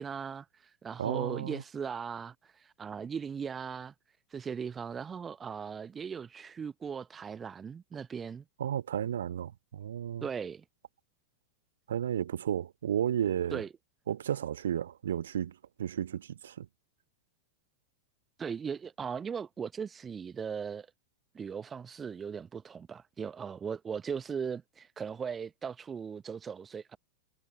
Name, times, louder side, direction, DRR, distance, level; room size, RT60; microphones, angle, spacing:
voice 1, 0.0-3.9 4.3-8.4 10.2-10.6 13.5-13.7 18.4-20.9 21.3-27.0, right 6 dB, 20° right, 0.8 m, -38 dB
voice 2, 1.0-1.6 8.6-10.3 11.9-13.6 14.1-16.7, right 9 dB, 65° right, 1.3 m, -33 dB
figure-of-eight pair, 90°, 0 cm